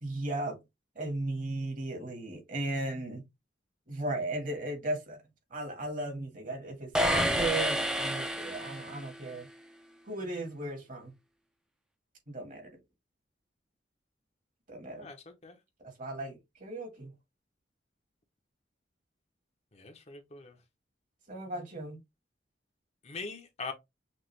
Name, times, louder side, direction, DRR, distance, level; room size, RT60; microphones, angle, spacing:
voice 1, 0.0-0.6 0.9-3.2 3.9-5.2 5.5-9.5 10.1-11.1 12.3-12.6 14.7-15.1 15.8-17.1 21.3-22.0, right 2 dB, 45° right, 1.6 m, -36 dB
sound 1, 6.9-9.2, equal, 5° right, 0.5 m, -29 dB
voice 2, 14.9-15.6 19.7-20.6 23.0-23.7, left 4 dB, 35° left, 0.8 m, -42 dB
6.0 x 2.4 x 3.2 m
head